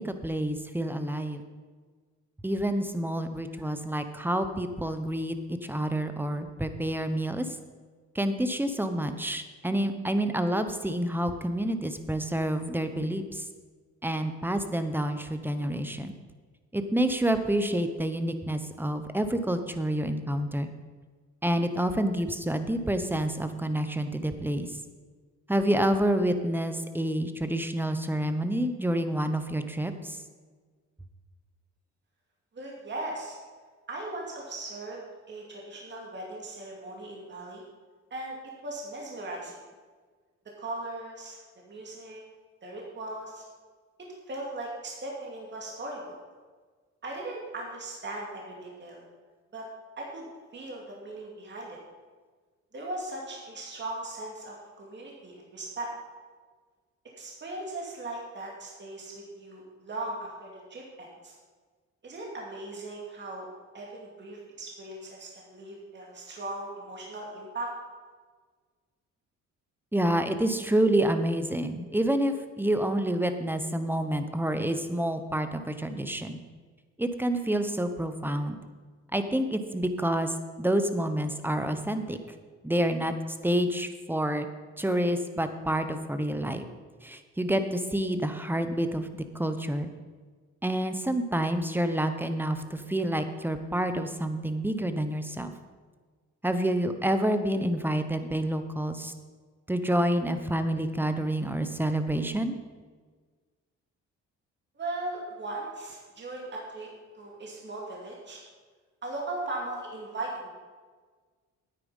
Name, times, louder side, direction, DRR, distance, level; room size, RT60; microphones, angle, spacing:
voice 1, 0.0-1.4 2.4-5.3 5.6-7.5 8.1-13.4 14.0-16.1 16.7-20.7 21.4-24.7 25.5-30.2 69.9-76.4 77.0-78.6 79.1-82.2 82.6-83.1 83.4-84.5 84.8-86.6 87.0-89.9 90.6-95.5 96.4-99.1 99.7-102.5, right 1 dB, 5° right, 8 dB, 0.9 m, -28 dB
voice 2, 32.5-33.4 33.9-35.0 35.3-37.6 38.1-38.4 38.6-39.6 40.6-41.4 41.7-42.2 42.6-43.4 44.3-46.2 47.0-49.0 49.5-49.7 50.0-50.3 50.5-51.8 52.7-55.9 57.2-61.3 62.0-63.5 63.7-67.7 104.8-106.9 107.1-108.4 109.0-110.5, right 2 dB, 35° right, -2 dB, 2.4 m, -38 dB
9.7 x 9.1 x 5.6 m, 1.5 s
cardioid pair, 90°, 30 cm